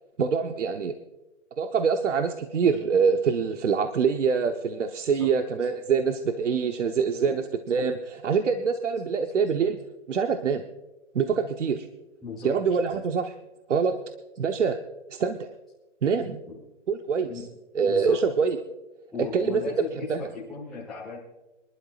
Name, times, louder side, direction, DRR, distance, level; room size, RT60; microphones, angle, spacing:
voice 1, 0.2-0.9 1.6-9.8 10.1-10.6 11.1-11.9 12.4-13.3 13.7-14.0 14.4-14.8 15.1-15.5 16.0-16.4 16.9-17.4 17.7-18.6 19.2-19.6 20.1-20.2, right 6 dB, 75° right, 6 dB, 1.0 m, -25 dB
voice 2, 12.2-12.5 16.5-16.6 17.2-17.5 17.9-18.2 19.1-21.2, left 5 dB, ahead, -10 dB, 1.0 m, -37 dB
26.0 x 11.5 x 2.5 m, 1.0 s
hypercardioid pair, 170°, 36 cm